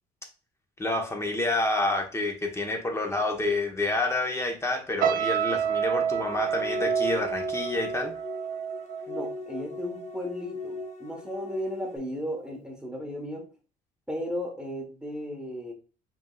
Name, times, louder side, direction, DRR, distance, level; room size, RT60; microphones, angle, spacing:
voice 1, 0.8-8.1, left 2 dB, 15° left, 3 dB, 1.3 m, -28 dB
sound 1, 5.0-10.3 10.6-10.9, right 8 dB, 55° right, 0.7 m, -29 dB
sound 2, 6.2-12.0, left 3 dB, 40° left, 1.0 m, -38 dB
voice 2, 9.1-13.5 14.1-15.7, equal, 5° right, 1 dB, 1.3 m, -35 dB
5.1 x 3.7 x 2.4 m, 0.35 s
cardioid pair, 110°, 17 cm